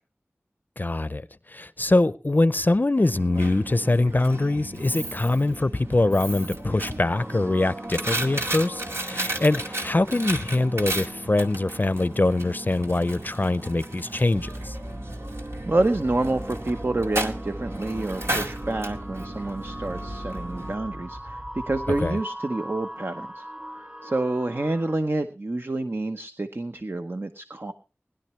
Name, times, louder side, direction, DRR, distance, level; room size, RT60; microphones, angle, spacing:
voice 1, 0.8-14.8 21.9-22.2, left 2 dB, 45° left, 0.5 m, -23 dB
Coin (dropping), 3.0-20.7, right 1 dB, 75° right, 2.0 m, -34 dB
sound 1, 7.1-25.0, equal, 20° right, 2.1 m, -42 dB
sound 2, 14.4-22.0, equal, 40° right, 5.4 m, -39 dB
voice 2, 15.7-23.5 24.0-27.7, right 2 dB, 55° right, 0.9 m, -28 dB
20.5 x 11.5 x 3.2 m
wide cardioid pair, 50°, 4 cm